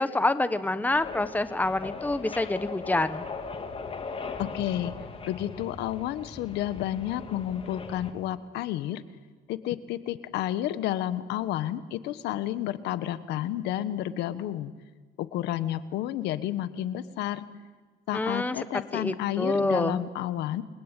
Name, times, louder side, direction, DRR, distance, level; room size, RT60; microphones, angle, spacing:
voice 1, 0.0-3.3 18.1-18.6 18.9-20.0, left 2 dB, 10° left, 12 dB, 1.4 m, -27 dB
sound 1, 0.9-8.1, left 4 dB, 35° left, 2.6 m, -39 dB
voice 2, 4.4-4.9 5.2-9.0 9.5-14.7 15.2-17.5 18.1-20.6, left 12 dB, 85° left, 14 dB, 1.4 m, -31 dB
29.5 x 22.0 x 9.2 m, 1.4 s
cardioid pair, 110°, 17 cm